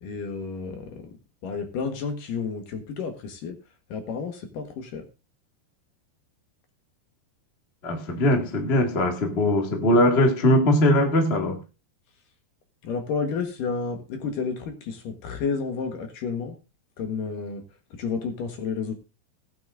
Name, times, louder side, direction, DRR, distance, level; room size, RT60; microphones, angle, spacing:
voice 1, 0.0-1.1 1.4-3.6 3.9-5.1 12.8-16.6 17.0-17.6 17.9-18.9, left 5 dB, 60° left, 2.7 m, -31 dB
voice 2, 7.8-11.6, left 1 dB, 35° left, 1.0 m, -21 dB
19.0 x 9.4 x 2.6 m
omnidirectional pair, 4.8 m